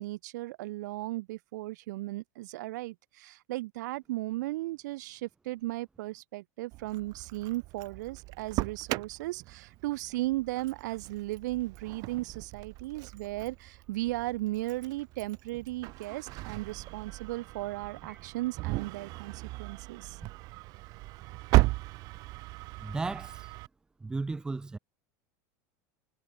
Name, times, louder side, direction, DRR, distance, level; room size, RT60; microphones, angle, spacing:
voice 1, 0.0-20.2, right 18 dB, 85° right, 3.7 m, -36 dB
Engine starting, 6.7-23.7, right 22 dB, 40° right, 1.1 m, -36 dB
voice 2, 22.8-23.5 24.0-24.8, right 3 dB, 10° right, 1.5 m, -35 dB
supercardioid pair, 170°, 9 cm